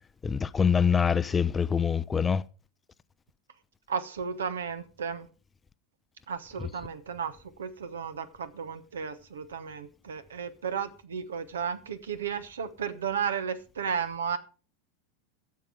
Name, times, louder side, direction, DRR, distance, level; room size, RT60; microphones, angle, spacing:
voice 1, 0.2-2.4, left 7 dB, 20° left, 0.6 m, -25 dB
voice 2, 3.9-5.3 6.3-14.4, right 7 dB, 75° right, 1.1 m, -34 dB
13.5 x 7.7 x 5.1 m
figure-of-eight pair, 85°, 0 cm